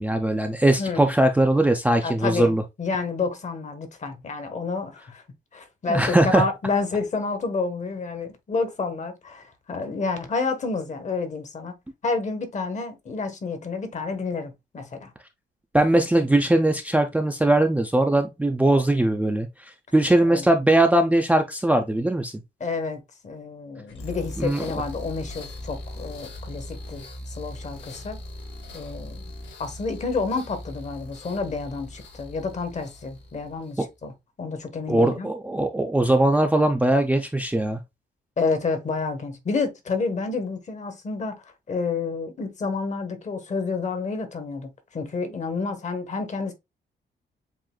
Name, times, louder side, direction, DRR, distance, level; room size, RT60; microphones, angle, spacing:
voice 1, 0.0-2.6 5.9-6.4 15.7-19.5 19.9-22.3 24.4-24.6 33.8-33.9 34.9-37.8, right 1 dB, 5° right, 0.5 m, -20 dB
voice 2, 0.8-1.1 2.0-5.2 5.5-11.8 12.0-15.1 20.3-20.4 22.6-28.2 28.7-29.2 29.6-34.1 34.4-35.3 38.4-46.5, left 4 dB, 40° left, 1.1 m, -29 dB
sound 1, 23.9-33.9, left 1 dB, 75° left, 2.0 m, -39 dB
7.5 x 2.6 x 2.2 m
cardioid pair, 135°, 19 cm